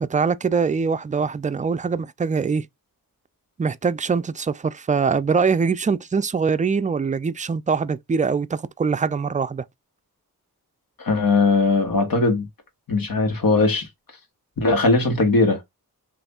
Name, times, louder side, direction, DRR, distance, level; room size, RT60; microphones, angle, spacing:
voice 1, 0.0-2.7 3.6-9.6, right 5 dB, 20° right, 0.3 m, -23 dB
voice 2, 11.0-12.5 12.9-13.9 14.6-15.6, left 3 dB, 70° left, 1.4 m, -19 dB
3.2 x 2.6 x 4.1 m
cardioid pair, 45°, 36 cm